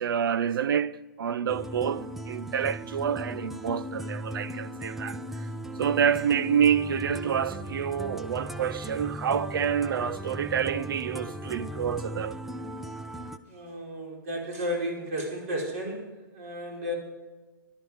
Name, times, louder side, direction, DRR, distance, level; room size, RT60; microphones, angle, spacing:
voice 1, 0.0-5.5 5.8-12.4, right 8 dB, 75° right, 0.7 m, -28 dB
sound 1, 1.5-13.4, equal, ahead, 0.4 m, -37 dB
voice 2, 13.5-16.1 16.3-16.9, equal, 45° right, 4.8 m, -33 dB
16.5 x 12.0 x 4.7 m
hypercardioid pair, 160°, 12 cm